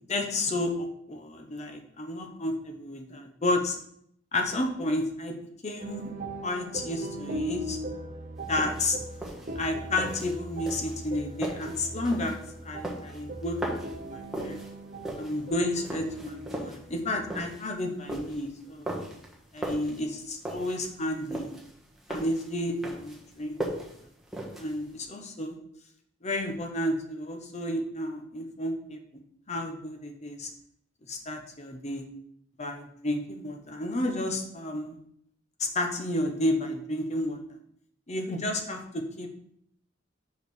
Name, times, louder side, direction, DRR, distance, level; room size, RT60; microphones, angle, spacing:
voice 1, 0.1-3.8 4.3-5.4 5.6-6.1 6.4-7.8 8.5-9.0 9.5-12.4 12.6-14.6 15.2-18.9 19.5-21.5 22.1-23.6 24.6-25.5 26.2-29.0 29.5-30.5 31.1-32.0 32.6-35.0 35.7-37.6 38.1-39.3, left 1 dB, 35° left, 4 dB, 1.0 m, -31 dB
sound 1, 5.8-17.6, right 1 dB, 40° right, 0.8 m, -39 dB
sound 2, 8.4-25.0, right 1 dB, ahead, 1.4 m, -38 dB
5.2 x 4.9 x 6.3 m, 0.70 s
head